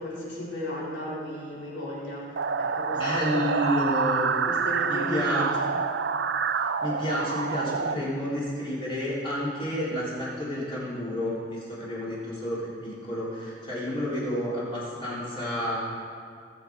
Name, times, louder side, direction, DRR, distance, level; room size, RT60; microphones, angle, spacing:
voice 1, 0.0-3.4 4.5-5.5, left 1 dB, 75° left, -6 dB, 3.8 m, -35 dB
sound 1, 2.4-7.9, right 5 dB, 65° right, 0.5 m, -27 dB
voice 2, 2.9-4.5 4.9-5.5 6.8-15.8, equal, 30° left, -7 dB, 3.4 m, -30 dB
19.0 x 7.2 x 4.6 m, 2.3 s
head